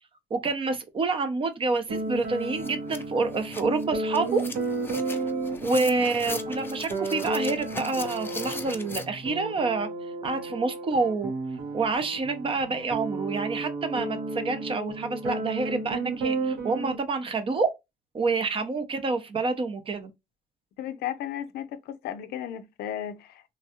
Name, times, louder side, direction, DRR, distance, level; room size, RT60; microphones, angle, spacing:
voice 1, 0.3-4.4 5.6-9.9 10.2-11.3 11.7-17.7 18.1-20.1, right 3 dB, 30° right, 0.7 m, -28 dB
sound 1, 1.7-1.8 2.2-9.0, left 3 dB, 15° left, 0.4 m, -40 dB
sound 2, 1.9-17.0, right 3 dB, 65° right, 1.1 m, -33 dB
voice 2, 20.8-23.4, left 10 dB, 70° left, 0.5 m, -35 dB
3.3 x 2.3 x 2.7 m
cardioid pair, 110°, 17 cm